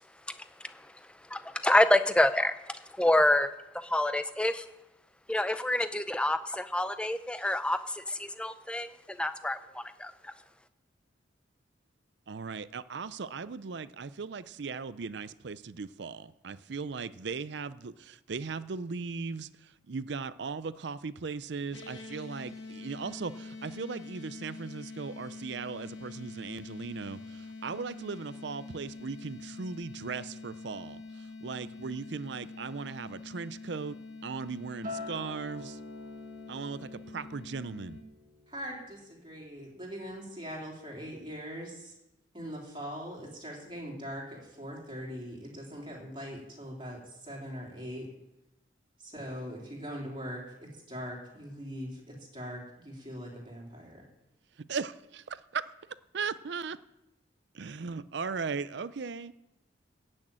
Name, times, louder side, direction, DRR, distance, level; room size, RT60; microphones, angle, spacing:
voice 1, 1.3-3.5 3.7-4.7 5.3-10.3, left 1 dB, 5° left, 11 dB, 0.5 m, -27 dB
voice 2, 12.3-34.0 34.2-35.8 36.5-38.0 54.7-55.6 56.1-56.8 57.5-59.4, right 5 dB, 65° right, 16 dB, 0.5 m, -38 dB
sound 1, 21.7-38.0, left 3 dB, 75° left, 1.9 m, -45 dB
Acoustic guitar, 34.8-39.3 39.6-40.0, left 2 dB, 45° right, 1.9 m, -46 dB
voice 3, 38.5-41.9 42.3-48.1 49.0-54.0, equal, 25° right, -2 dB, 3.3 m, -41 dB
14.5 x 6.5 x 8.9 m, 0.90 s
head